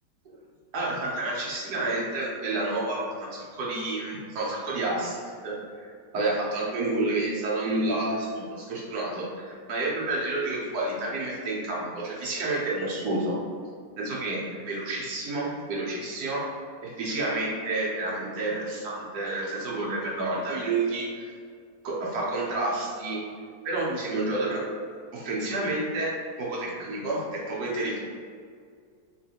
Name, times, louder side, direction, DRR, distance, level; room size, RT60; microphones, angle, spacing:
voice 1, 0.7-5.5 6.1-13.3 14.0-16.4 16.8-21.2 21.8-23.2 23.6-24.6 25.1-26.1 26.4-28.0, right 2 dB, 65° right, -5 dB, 1.4 m, -29 dB
3.7 x 3.2 x 2.8 m, 2.1 s
omnidirectional pair, 2.0 m